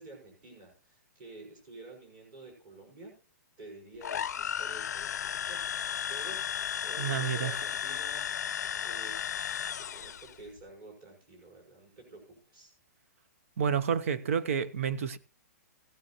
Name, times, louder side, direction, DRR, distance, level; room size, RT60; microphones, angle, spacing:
voice 1, 0.0-3.1 3.6-9.1 9.8-12.7, right 2 dB, 30° right, 5.1 m, -50 dB
sound 1, 4.0-10.3, left 9 dB, 70° left, 0.6 m, -34 dB
voice 2, 7.0-7.6 13.6-15.2, right 7 dB, 50° right, 0.9 m, -29 dB
16.0 x 9.4 x 2.9 m
hypercardioid pair, 175°, 9 cm